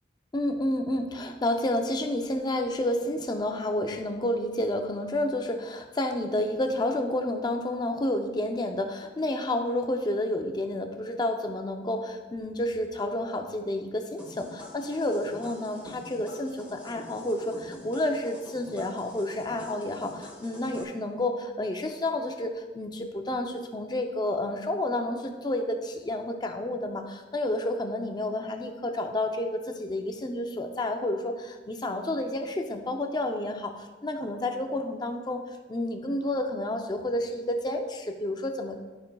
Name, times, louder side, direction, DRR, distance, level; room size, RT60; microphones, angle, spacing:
voice 1, 0.3-38.8, left 1 dB, 25° left, 4 dB, 0.4 m, -30 dB
sound 1, 14.2-20.8, equal, 10° right, 1.2 m, -46 dB
11.5 x 5.3 x 2.2 m, 1.3 s
head